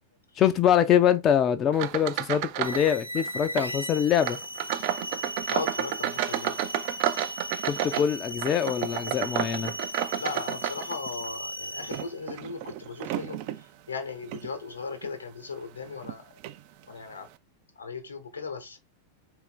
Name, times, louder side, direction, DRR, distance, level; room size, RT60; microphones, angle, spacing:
voice 1, 0.4-4.4 7.6-9.7, left 9 dB, 30° left, 0.4 m, -24 dB
sound 1, 1.7-2.9 3.2-3.7 4.2-11.3 11.8-13.6 14.2-14.5 15.0-15.2 16.0-16.1 16.4-16.6, right 12 dB, 45° right, 0.3 m, -31 dB
sound 2, 2.6-12.2, equal, 90° left, 0.5 m, -37 dB
voice 2, 5.4-6.6 10.2-16.3 16.9-17.3 17.8-18.8, left 4 dB, 75° left, 0.9 m, -37 dB
4.3 x 2.6 x 3.8 m
figure-of-eight pair, 90°, 0 cm